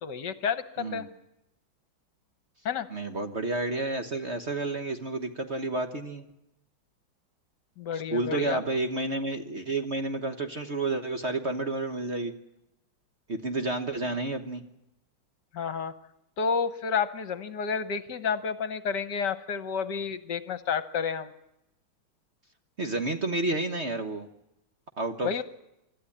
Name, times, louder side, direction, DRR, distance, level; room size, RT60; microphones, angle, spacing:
voice 1, 0.0-1.1 2.6-2.9 7.8-8.6 15.5-15.9 16.4-21.3 25.2-25.4, left 6 dB, 60° left, 13 dB, 1.5 m, -30 dB
voice 2, 0.8-1.1 2.9-6.2 7.9-12.3 13.3-14.6 22.8-24.3 25.0-25.3, right 2 dB, 40° right, 7 dB, 1.2 m, -30 dB
25.5 x 13.0 x 10.0 m, 0.88 s
omnidirectional pair, 2.3 m